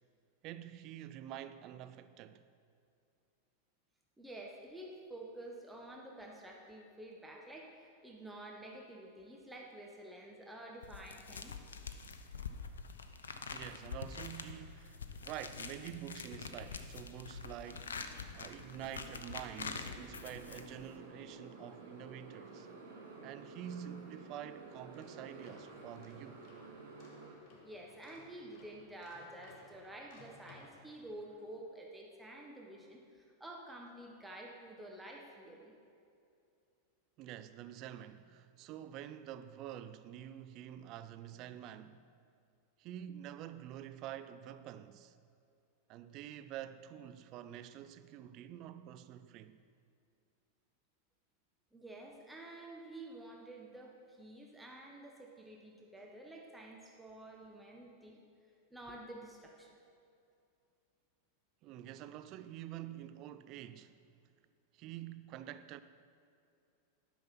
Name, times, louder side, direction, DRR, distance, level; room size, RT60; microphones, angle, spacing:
voice 1, 0.4-2.4 13.5-18.1 18.3-22.7 23.2-26.4 37.2-42.0 42.8-45.2 45.9-49.6 56.0-56.1 61.6-64.0 64.7-65.8, right 11 dB, 40° right, 0.4 m, -47 dB
voice 2, 4.2-11.5 27.6-35.7 51.7-58.2 58.7-59.7, right 1 dB, 5° right, 1.0 m, -50 dB
sound 1, 10.8-21.0, left 5 dB, 70° left, 0.6 m, -46 dB
Motorcycle, 17.6-27.4, right 3 dB, 65° right, 2.4 m, -52 dB
sound 2, 24.9-31.5, left 3 dB, 40° left, 1.6 m, -61 dB
12.0 x 5.9 x 5.8 m
figure-of-eight pair, 90°, 0 cm